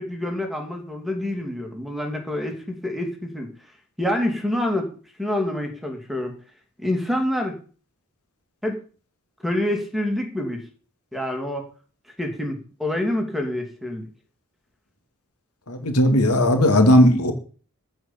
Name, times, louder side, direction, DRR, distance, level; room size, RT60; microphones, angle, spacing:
voice 1, 0.0-3.5 4.0-4.9 5.2-6.4 6.8-7.6 8.6-8.8 9.4-10.6 11.1-11.7 12.2-14.0, left 1 dB, ahead, 3 dB, 2.8 m, -27 dB
voice 2, 15.7-17.3, equal, 85° left, 6 dB, 2.6 m, -16 dB
14.5 x 5.5 x 8.9 m, 0.40 s
head